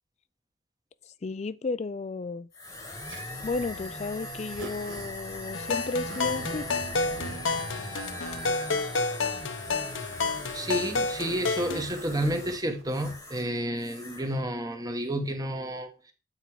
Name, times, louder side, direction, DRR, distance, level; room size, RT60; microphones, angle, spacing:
voice 1, 1.2-2.5 3.4-6.7, left 3 dB, 35° left, 0.3 m, -33 dB
sound 1, 2.5-13.5 13.8-14.3, left 1 dB, 15° left, 1.2 m, -40 dB
Zipper (clothing), 3.1-13.2, right 2 dB, 80° right, 2.3 m, -46 dB
sound 2, 5.5-11.8, left 3 dB, 80° left, 0.8 m, -30 dB
voice 2, 10.5-16.1, right 1 dB, 20° right, 1.0 m, -30 dB
9.1 x 4.7 x 4.7 m
head